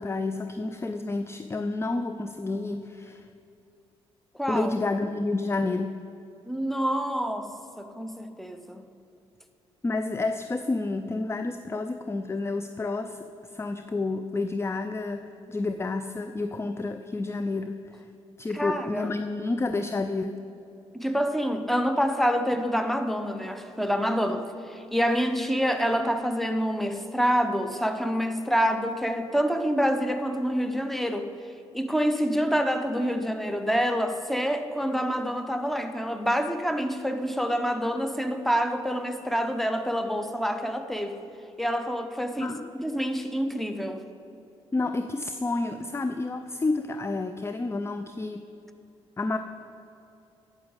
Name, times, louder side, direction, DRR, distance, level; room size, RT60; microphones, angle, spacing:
voice 1, 0.0-3.3 4.5-6.0 9.8-18.1 18.4-20.4 42.4-42.7 44.7-48.4 49.2-49.4, left 3 dB, 15° left, 8 dB, 0.5 m, -30 dB
voice 2, 4.4-4.7 6.5-7.5 7.8-8.8 18.5-19.1 20.9-31.3 31.7-41.2 41.6-44.0, equal, ahead, 8 dB, 1.0 m, -27 dB
9.4 x 7.2 x 7.1 m, 2.7 s
figure-of-eight pair, 40°, 15 cm